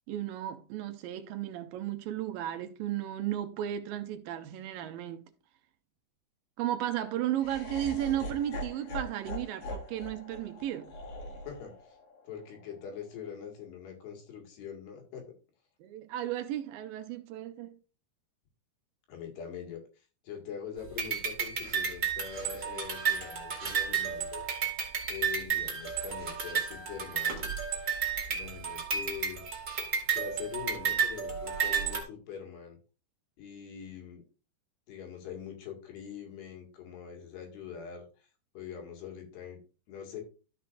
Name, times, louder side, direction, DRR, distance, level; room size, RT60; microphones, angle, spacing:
voice 1, 0.1-5.3 6.6-10.9 15.8-17.7, right 12 dB, 80° right, 2.0 m, -34 dB
Laughter, 7.4-13.5, left 1 dB, 50° left, 3.0 m, -42 dB
voice 2, 11.5-12.0 12.2-15.3 19.1-19.8 20.2-24.5 25.1-27.4 28.3-29.4 30.1-32.8 33.4-34.2 34.9-38.3 38.5-39.6 39.9-40.2, left 7 dB, 75° left, 4.1 m, -43 dB
sound 1, 21.0-32.0, right 7 dB, 40° right, 1.1 m, -32 dB
13.0 x 6.2 x 2.6 m
omnidirectional pair, 4.8 m